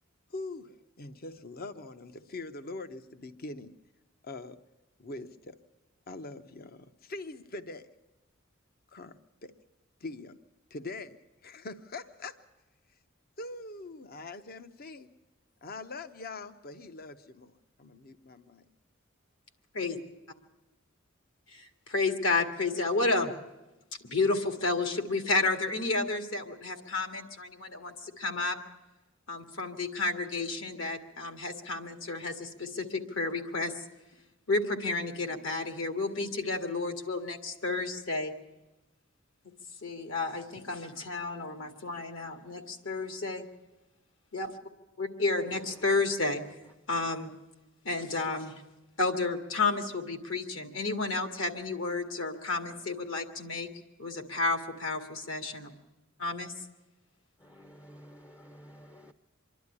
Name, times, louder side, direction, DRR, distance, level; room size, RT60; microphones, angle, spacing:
voice 1, 0.3-3.7 4.2-4.6 5.0-5.6 6.1-7.9 8.9-9.5 10.0-10.4 10.7-11.2 11.4-12.4 13.4-15.1 15.6-18.7, left 3 dB, 50° left, 10 dB, 0.8 m, -43 dB
voice 2, 21.5-23.3 24.0-28.6 29.3-33.8 34.5-38.3 39.8-43.5 44.3-44.5 45.0-46.4 46.9-47.3 47.8-48.5 49.0-53.7 54.0-55.7 56.2-56.5, left 3 dB, 70° left, 6 dB, 2.1 m, -31 dB
voice 3, 57.4-59.1, equal, 15° left, 8 dB, 0.6 m, -52 dB
25.5 x 11.5 x 9.7 m, 1.0 s
head